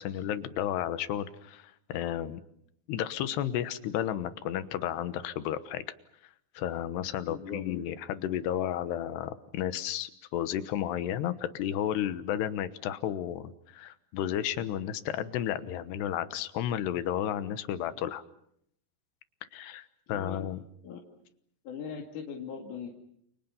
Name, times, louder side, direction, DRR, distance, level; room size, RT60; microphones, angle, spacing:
voice 1, 0.0-2.4 2.9-5.9 6.5-18.2 19.5-20.6, left 11 dB, 80° left, 12 dB, 3.3 m, -32 dB
voice 2, 7.2-7.6 20.1-20.5 20.8-21.0 21.6-22.9, left 6 dB, 55° left, 0 dB, 3.5 m, -40 dB
29.0 x 29.0 x 5.6 m, 0.71 s
omnidirectional pair, 4.8 m